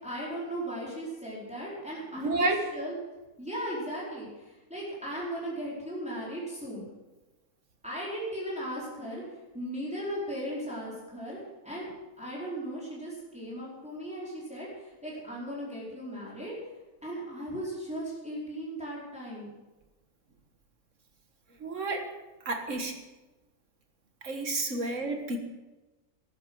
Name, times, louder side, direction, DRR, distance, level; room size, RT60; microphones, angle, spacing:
voice 1, 0.0-2.9 3.4-6.9 7.8-11.9 12.2-16.5 17.0-19.5 24.7-24.8, equal, 5° right, -6 dB, 4.5 m, -37 dB
voice 2, 2.1-2.6 21.6-22.1 22.5-23.0 24.2-25.4, right 2 dB, 65° right, 5 dB, 1.8 m, -30 dB
13.5 x 11.5 x 6.2 m, 1.1 s
omnidirectional pair, 1.4 m